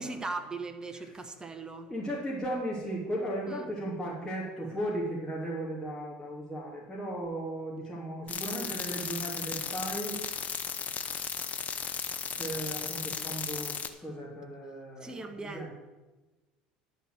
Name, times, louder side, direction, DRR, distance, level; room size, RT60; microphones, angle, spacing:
voice 1, 0.0-1.9 3.5-3.6 15.0-15.7, right 3 dB, 15° right, 6 dB, 1.3 m, -39 dB
voice 2, 1.8-10.2 12.4-15.7, right 1 dB, 10° left, -6 dB, 2.8 m, -36 dB
sound 1, 8.3-13.9, left 7 dB, 35° left, 0.9 m, -35 dB
11.0 x 4.5 x 7.9 m, 1.2 s
hypercardioid pair, 75°, 4 cm